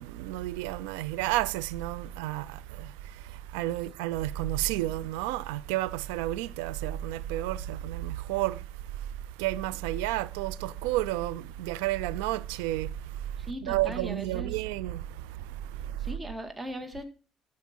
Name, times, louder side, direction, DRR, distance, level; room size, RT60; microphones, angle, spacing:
voice 1, 0.0-16.2, right 15 dB, 85° right, 0.4 m, -32 dB
voice 2, 13.4-14.6 16.0-17.0, right 1 dB, 20° right, 2.1 m, -38 dB
14.5 x 5.3 x 4.5 m
hypercardioid pair, 60°, 0 cm